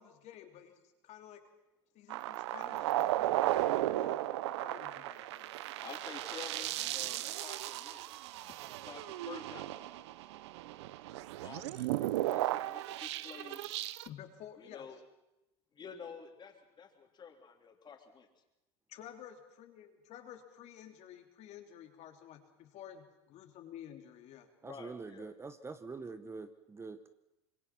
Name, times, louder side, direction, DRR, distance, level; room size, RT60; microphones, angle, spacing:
voice 1, 0.0-1.5 1.9-4.2 4.6-5.5 8.4-8.5 14.0-15.0 18.9-24.5, left 10 dB, 55° left, 5 dB, 3.0 m, -52 dB
sound 1, 2.1-14.1, right 15 dB, 85° right, 0.7 m, -35 dB
voice 2, 5.8-8.2 8.6-10.1 11.4-13.6 14.6-15.0 15.7-18.3 24.6-25.3, left 6 dB, 30° left, 3 dB, 3.7 m, -50 dB
voice 3, 24.6-27.1, right 4 dB, 20° right, 11 dB, 1.1 m, -45 dB
25.5 x 22.5 x 6.0 m, 0.92 s
supercardioid pair, 105°, 14 cm